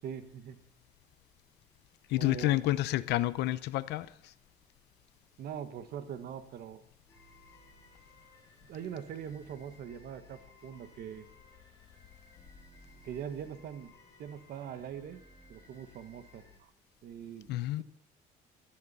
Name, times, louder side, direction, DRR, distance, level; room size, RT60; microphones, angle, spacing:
voice 1, 0.0-0.6 2.2-2.6 5.4-6.8 8.6-11.3 13.0-13.9 14.2-15.2 15.5-16.7 17.0-17.5, right 8 dB, 65° right, 1.2 m, -42 dB
voice 2, 2.1-4.1 17.5-17.8, left 16 dB, 85° left, 0.7 m, -29 dB
sound 1, 7.1-16.6, left 2 dB, 15° left, 4.2 m, -59 dB
17.0 x 13.0 x 4.1 m
cardioid pair, 110°, 17 cm